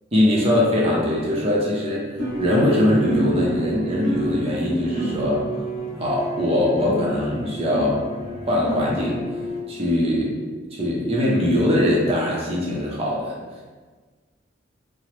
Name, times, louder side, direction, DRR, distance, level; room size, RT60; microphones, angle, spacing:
voice 1, 0.1-2.1 2.4-5.4 6.0-8.0 8.5-9.2 9.7-10.3 10.7-13.3, left 1 dB, 30° right, -4 dB, 0.5 m, -21 dB
sound 1, 2.2-9.6, right 1 dB, 35° left, 0.9 m, -30 dB
2.9 x 2.0 x 3.0 m, 1.4 s
head